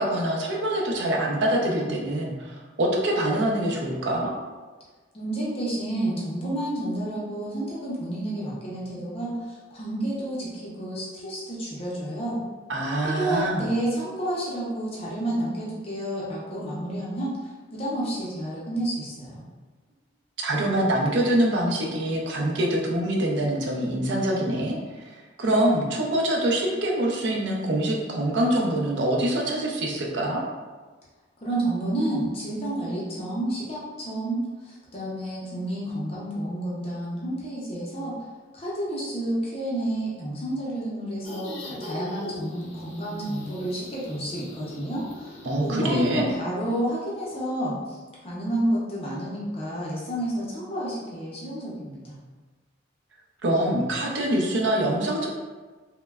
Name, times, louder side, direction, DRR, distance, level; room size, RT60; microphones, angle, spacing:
voice 1, 0.0-4.3 12.7-13.7 20.4-30.4 45.5-46.2 53.4-55.3, right 1 dB, 70° right, -1 dB, 0.5 m, -25 dB
voice 2, 5.1-12.4 13.0-19.4 31.4-38.2 38.5-52.2, right 1 dB, 30° left, -6 dB, 0.6 m, -30 dB
sound 1, 41.2-46.2, equal, 85° left, 0.6 m, -40 dB
3.0 x 2.1 x 2.3 m, 1.3 s
head